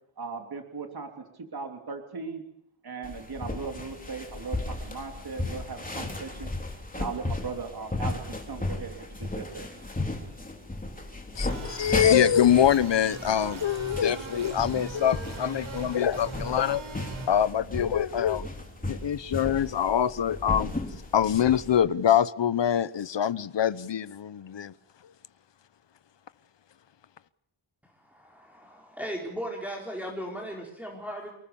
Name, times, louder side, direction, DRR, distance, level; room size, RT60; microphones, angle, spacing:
voice 1, 0.2-1.2 1.5-2.4 2.8-6.5 6.9-8.2 8.5-9.7, right 4 dB, 45° right, 4 dB, 3.3 m, -38 dB
sound 1, 3.0-21.8, left 2 dB, 15° left, 3.7 m, -35 dB
voice 2, 11.4-16.8 17.3-18.4 18.9-20.7 21.1-24.7, left 9 dB, 60° left, 16 dB, 1.0 m, -24 dB
sound 2, 11.4-17.3, right 3 dB, 65° right, 6.6 m, -40 dB
voice 3, 28.1-31.3, equal, 5° right, -2 dB, 4.6 m, -37 dB
29.0 x 19.5 x 7.1 m, 0.72 s
wide cardioid pair, 180°, 50 cm